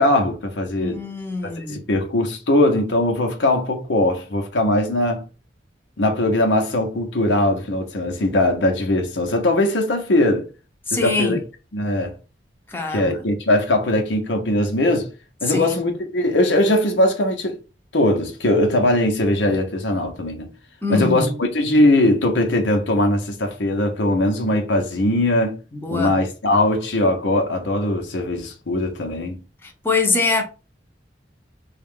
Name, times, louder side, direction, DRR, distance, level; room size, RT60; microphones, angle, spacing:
voice 1, 0.0-1.0 1.4-5.2 6.0-10.5 10.9-11.4 11.7-12.1 12.9-15.1 15.4-17.6 17.9-20.5 20.9-25.6 25.9-29.4, left 1 dB, 90° left, 0.8 m, -20 dB
voice 2, 0.8-1.8 10.9-11.4 12.7-13.1 15.5-15.7 20.8-21.3 25.8-26.2 29.6-30.4, left 3 dB, 10° left, 0.7 m, -23 dB
3.6 x 2.4 x 3.6 m
head